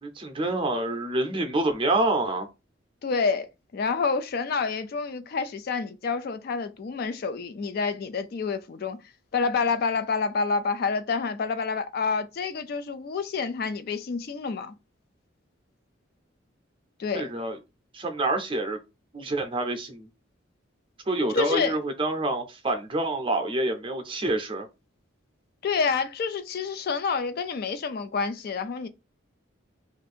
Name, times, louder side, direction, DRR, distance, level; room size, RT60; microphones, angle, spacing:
voice 1, 0.0-2.5 17.1-17.6 17.9-18.8 19.1-20.1 21.1-24.7, right 2 dB, 25° right, 0.6 m, -27 dB
voice 2, 3.0-9.0 9.3-14.7 17.0-17.3 21.3-21.7 25.6-28.9, left 5 dB, 50° left, 0.3 m, -28 dB
2.6 x 2.5 x 4.2 m
head